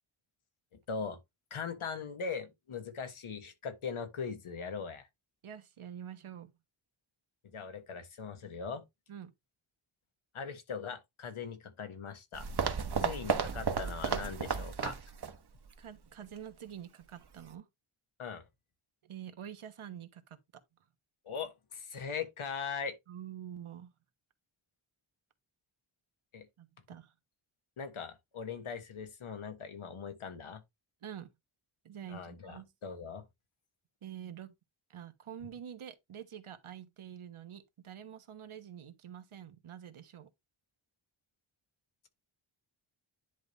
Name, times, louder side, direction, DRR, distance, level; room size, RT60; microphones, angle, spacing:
voice 1, 0.7-1.2 1.5-5.1 7.5-8.8 10.3-12.5 13.0-15.0 18.2-18.4 21.2-23.0 26.3-26.5 27.8-30.6 32.1-33.2, left 6 dB, 80° left, 1.6 m, -40 dB
voice 2, 5.4-6.5 9.1-9.3 12.9-13.2 15.8-17.7 19.0-20.4 23.1-23.9 26.6-27.1 31.0-31.3 31.8-32.7 34.0-34.5 34.9-40.3, right 9 dB, 80° right, 1.3 m, -47 dB
sound 1, 12.3-15.4 15.7-15.8 16.4-16.5, right 6 dB, 50° right, 1.2 m, -33 dB
10.0 x 3.4 x 3.9 m
wide cardioid pair, 125°, 49 cm